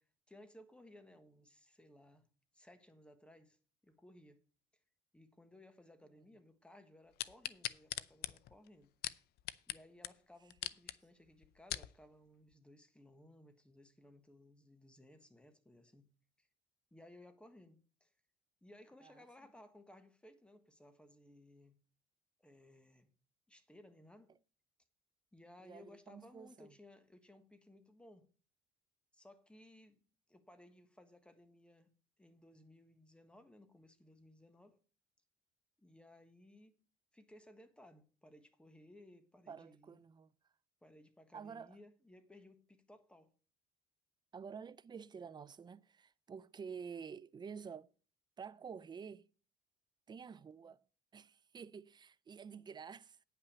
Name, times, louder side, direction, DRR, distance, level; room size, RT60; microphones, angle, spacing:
voice 1, 0.0-2.3 2.5-3.6 3.8-4.4 5.1-8.9 9.7-16.1 16.4-16.5 16.9-18.1 18.6-21.8 22.4-23.1 23.5-24.3 25.3-28.3 29.1-30.0 30.3-31.9 32.2-34.8 35.8-36.7 37.1-40.0 40.8-43.3, left 1 dB, 5° left, 1.5 m, -60 dB
sound 1, 7.2-9.8 10.0-10.1 10.5-10.9 11.4-11.9 12.5-12.6, left 14 dB, 70° left, 0.6 m, -41 dB
voice 2, 25.6-26.7 39.5-40.3 41.3-41.8 44.3-47.9 48.4-49.3 50.1-50.8 51.1-53.2, right 6 dB, 25° right, 0.5 m, -50 dB
9.4 x 5.9 x 6.7 m
cardioid pair, 110°, 17 cm